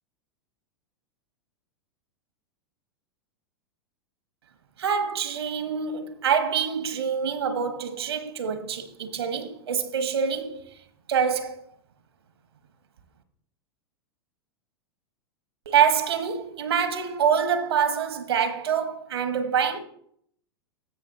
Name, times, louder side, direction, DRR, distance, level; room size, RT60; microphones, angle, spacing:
voice 1, 4.8-10.7 11.1-11.6 15.7-19.8, right 7 dB, 70° right, 1.1 m, -25 dB
15.5 x 5.5 x 2.7 m
figure-of-eight pair, 95°, 13 cm